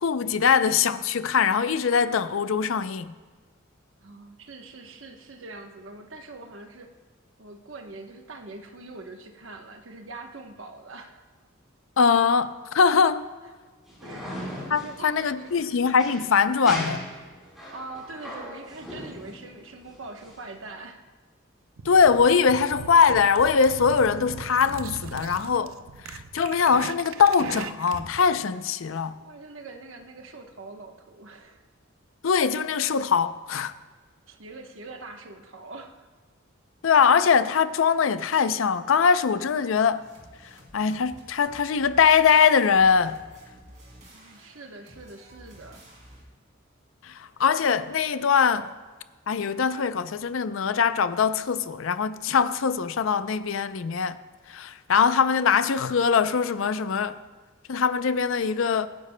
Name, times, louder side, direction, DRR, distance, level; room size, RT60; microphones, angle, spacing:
voice 1, 0.0-3.1 12.0-13.3 14.7-17.1 21.8-25.8 26.0-29.1 32.2-33.7 36.8-40.0 40.4-43.2 47.0-48.7 49.3-54.2 54.5-57.2 57.7-58.9, left 6 dB, 75° left, 0.5 m, -22 dB
voice 2, 4.0-7.0 7.4-11.3 14.0-14.4 14.7-15.9 17.7-21.1 29.2-31.6 34.3-36.1 44.0-45.8, right 3 dB, 70° right, 1.0 m, -43 dB
sound 1, 13.8-20.7, equal, ahead, 4.1 m, -39 dB
sound 2, 21.8-28.2, right 5 dB, 90° right, 0.6 m, -39 dB
sound 3, 40.0-46.2, equal, 40° right, 2.7 m, -51 dB
23.0 x 10.0 x 2.2 m
head